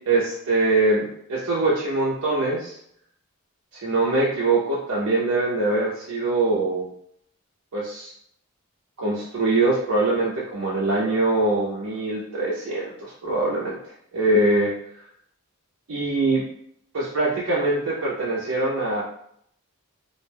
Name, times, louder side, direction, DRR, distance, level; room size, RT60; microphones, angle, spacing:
voice 1, 0.1-2.8 3.8-6.9 7.7-8.1 9.0-13.8 14.1-14.7 15.9-16.4 16.9-19.0, right 2 dB, 80° right, -6 dB, 0.5 m, -23 dB
2.4 x 2.1 x 3.3 m, 0.69 s
head